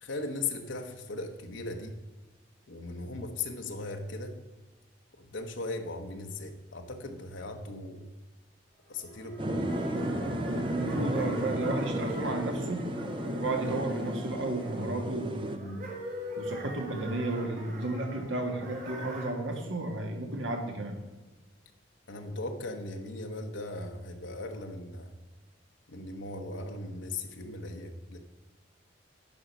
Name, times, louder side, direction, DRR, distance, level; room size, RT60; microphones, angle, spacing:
voice 1, 0.0-2.0 2.7-4.4 5.2-8.0 8.9-9.7 22.1-25.2 25.9-28.2, left 2 dB, 65° left, 4 dB, 1.0 m, -38 dB
sound 1, 9.0-19.3, equal, 50° right, 3.1 m, -42 dB
sound 2, 9.4-15.6, right 1 dB, 25° right, 0.8 m, -33 dB
voice 2, 10.7-12.8 13.4-15.8 16.4-21.0, right 2 dB, 75° right, 4 dB, 1.7 m, -33 dB
11.0 x 5.0 x 6.1 m, 1.2 s
head